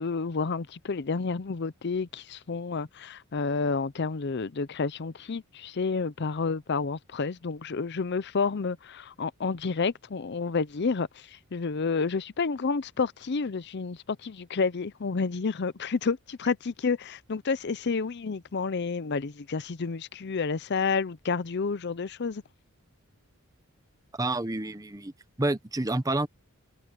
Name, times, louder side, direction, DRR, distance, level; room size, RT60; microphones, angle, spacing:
voice 1, 0.0-22.4, left 4 dB, 50° left, 0.6 m, -30 dB
voice 2, 24.1-25.1 25.4-26.3, right 2 dB, 15° right, 0.8 m, -28 dB
head